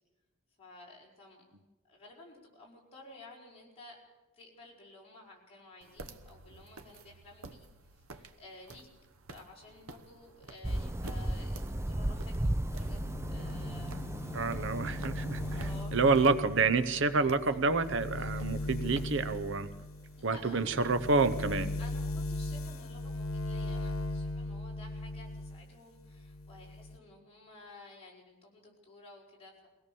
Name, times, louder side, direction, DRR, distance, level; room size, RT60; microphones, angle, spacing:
voice 1, 0.6-1.4 1.9-4.0 4.3-7.7 7.9-8.9 9.3-13.0 13.3-14.5 15.5-16.3 17.5-17.6 20.2-20.7 21.8-29.7, left 2 dB, 30° left, -3 dB, 4.9 m, -53 dB
sound 1, 5.8-21.3, right 3 dB, 90° right, 1.1 m, -52 dB
sound 2, 10.6-15.8, right 1 dB, 15° right, 0.6 m, -35 dB
sound 3, 12.7-25.6 26.0-27.0, left 1 dB, 80° left, 1.3 m, -38 dB
voice 2, 14.3-19.7 20.2-21.7, right 3 dB, 60° right, 12 dB, 0.8 m, -28 dB
22.5 x 17.0 x 7.0 m, 1.2 s
head